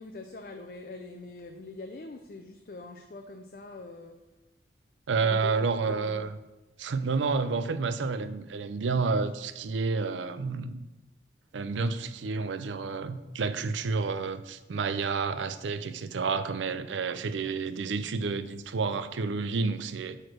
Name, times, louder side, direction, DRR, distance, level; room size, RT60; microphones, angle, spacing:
voice 1, 0.0-4.2 5.2-6.3 16.7-17.0 17.4-17.5, left 2 dB, 50° left, 4 dB, 0.5 m, -44 dB
voice 2, 5.1-6.4 6.8-10.8 11.5-20.2, right 4 dB, 90° right, 12 dB, 0.5 m, -30 dB
6.5 x 4.4 x 6.1 m, 1.0 s
head